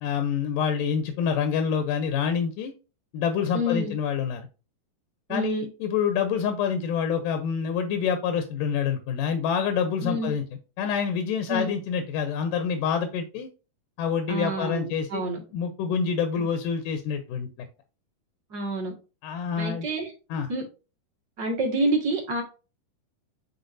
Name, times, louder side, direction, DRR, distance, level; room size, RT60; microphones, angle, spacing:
voice 1, 0.0-2.7 3.1-4.5 5.3-10.4 10.8-13.5 14.0-15.2 15.5-17.5 19.2-19.9 20.3-20.5, left 7 dB, 85° left, 2.4 m, -27 dB
voice 2, 3.5-3.9 5.3-5.7 10.0-10.3 11.5-11.7 14.3-15.4 16.4-16.5 18.5-18.9 19.6-20.1 20.5-20.6 21.4-22.4, right 1 dB, 35° right, 2.0 m, -28 dB
9.2 x 4.2 x 2.6 m
omnidirectional pair, 3.7 m